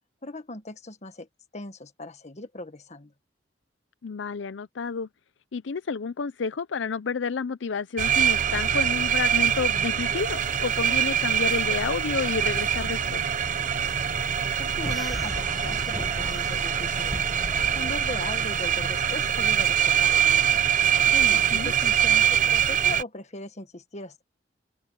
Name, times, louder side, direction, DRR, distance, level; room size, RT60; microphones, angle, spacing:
voice 1, 0.2-1.3 1.5-3.1 14.6-17.2 17.7-20.6 21.0-24.2, left 2 dB, 40° left, 1.6 m, -39 dB
voice 2, 4.0-5.1 5.5-13.2 21.5-21.7, left 5 dB, 80° left, 0.5 m, -30 dB
sound 1, 8.0-23.0, right 9 dB, 45° right, 0.8 m, -24 dB
sound 2, 14.8-18.3, equal, ahead, 1.2 m, -37 dB
head